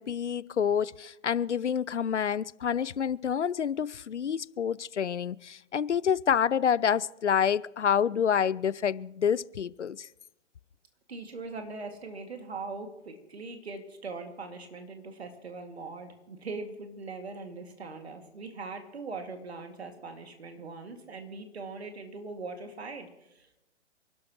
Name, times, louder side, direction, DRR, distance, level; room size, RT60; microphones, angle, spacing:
voice 1, 0.0-10.1, left 8 dB, 70° left, 0.5 m, -28 dB
voice 2, 11.1-23.6, right 3 dB, 60° right, 2.3 m, -41 dB
28.0 x 12.5 x 3.1 m
figure-of-eight pair, 125°, 37 cm